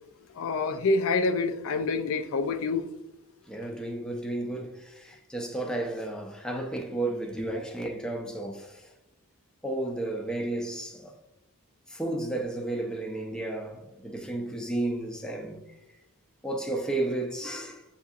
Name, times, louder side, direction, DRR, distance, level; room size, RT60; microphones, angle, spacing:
voice 1, 0.4-2.8, left 3 dB, 65° left, 0.4 m, -27 dB
voice 2, 3.5-8.9 9.6-11.1 11.9-15.6 16.4-17.8, right 2 dB, 5° left, 0.5 m, -33 dB
7.3 x 2.8 x 2.4 m
head